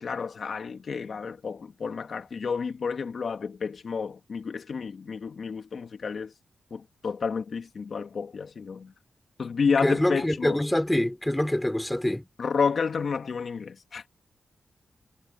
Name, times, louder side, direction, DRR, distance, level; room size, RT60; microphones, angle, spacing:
voice 1, 0.0-6.3 6.7-8.9 9.4-10.6 12.4-14.0, left 5 dB, 65° left, 2.7 m, -30 dB
voice 2, 9.8-12.3, left 1 dB, 10° left, 3.5 m, -25 dB
cardioid pair, 60°, 0 cm